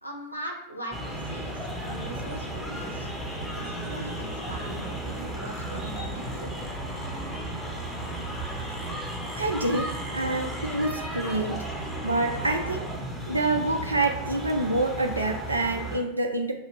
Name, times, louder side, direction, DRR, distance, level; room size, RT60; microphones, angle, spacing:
voice 1, 0.0-3.1 3.5-6.5, right 1 dB, 90° left, 0 dB, 0.7 m, -40 dB
sound 1, 0.9-16.0, right 1 dB, 5° left, 0.8 m, -34 dB
voice 2, 9.3-11.6 12.0-12.9 13.2-16.5, right 2 dB, 80° right, 3 dB, 0.3 m, -27 dB
5.3 x 2.4 x 3.2 m, 0.87 s
figure-of-eight pair, 90°, 0 cm